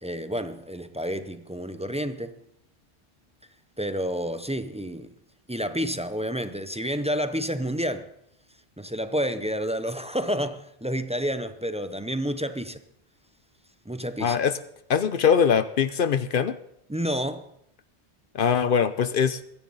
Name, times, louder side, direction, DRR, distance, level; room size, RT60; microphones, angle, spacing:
voice 1, 0.0-2.4 3.8-5.1 5.5-8.1 8.8-12.8 13.9-14.4 16.9-17.4, equal, 10° right, 0.3 m, -29 dB
voice 2, 14.2-14.5 14.9-16.6 18.3-19.4, left 7 dB, 55° left, 0.7 m, -22 dB
22.0 x 10.5 x 4.0 m
omnidirectional pair, 1.2 m